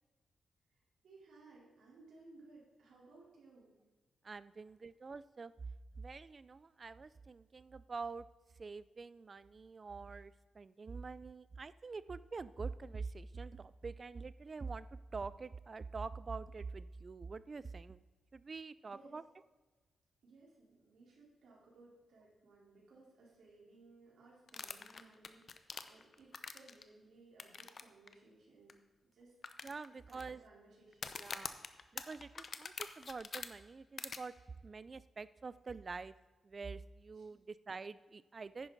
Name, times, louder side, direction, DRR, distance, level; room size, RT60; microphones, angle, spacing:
voice 1, 1.0-3.7 18.8-19.2 20.2-28.8 29.0-29.3 30.1-31.3 37.2-37.4, right 3 dB, 80° right, -4 dB, 3.8 m, -61 dB
voice 2, 4.2-5.5 6.0-8.3 8.6-14.9 15.1-18.0 18.3-19.2 29.6-30.4 31.2-31.6 31.9-34.3 34.6-36.1 36.4-38.7, right 4 dB, 35° right, 17 dB, 0.4 m, -46 dB
sound 1, 24.5-26.8 27.4-27.8 28.1-28.2 28.7-28.8 29.4-30.2 30.9-33.5 34.0-34.2, left 5 dB, 45° left, 0.7 m, -44 dB
10.0 x 10.0 x 4.0 m, 1.2 s
cardioid pair, 105°, 0 cm